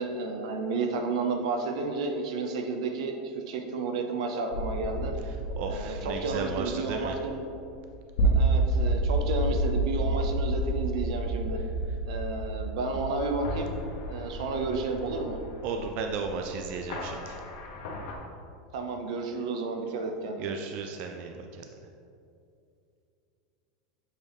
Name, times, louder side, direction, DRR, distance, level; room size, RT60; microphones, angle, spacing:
voice 1, 0.0-5.1 5.7-7.4 8.2-11.6 12.0-13.8 14.1-15.4 18.7-20.5, right 3 dB, 80° right, 4 dB, 0.7 m, -32 dB
sound 1, 4.5-18.1, right 1 dB, 65° left, 1.0 m, -30 dB
voice 2, 5.3-7.2 15.6-17.4 20.4-21.6, right 5 dB, 45° right, 4 dB, 0.3 m, -35 dB
7.3 x 3.9 x 3.5 m, 2.6 s
supercardioid pair, 150°, 3 cm